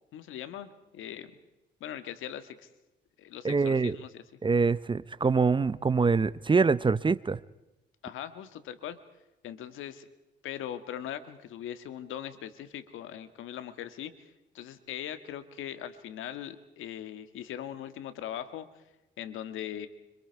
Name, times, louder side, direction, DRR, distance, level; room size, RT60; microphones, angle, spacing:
voice 1, 0.1-1.3 1.8-2.7 3.2-4.2 8.0-9.0 9.4-10.1 10.4-14.1 14.5-18.7 19.2-19.9, left 10 dB, 85° left, 11 dB, 1.8 m, -40 dB
voice 2, 3.4-4.0 4.4-7.4, right 4 dB, 25° right, 18 dB, 0.7 m, -25 dB
26.0 x 26.0 x 4.7 m, 0.97 s
cardioid pair, 90°, 20 cm